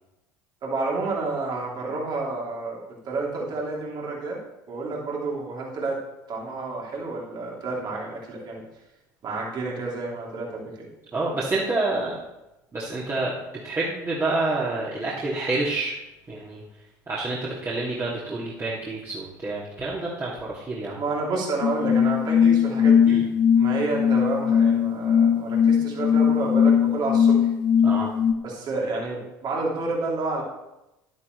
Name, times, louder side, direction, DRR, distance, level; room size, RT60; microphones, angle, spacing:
voice 1, 0.6-4.4 4.7-6.0 6.3-8.6 9.2-10.9 21.0-23.2 23.6-27.5 28.4-30.4, right 3 dB, 45° right, -3 dB, 3.3 m, -30 dB
voice 2, 11.1-12.2 12.7-13.3 13.6-16.0 16.3-16.6 17.1-21.0 23.1-23.3 27.8-28.1, right 2 dB, 25° right, -7 dB, 2.7 m, -28 dB
sound 1, 21.6-28.3, left 7 dB, 50° left, 0.9 m, -20 dB
11.5 x 9.6 x 3.3 m, 0.94 s
figure-of-eight pair, 65°, 10 cm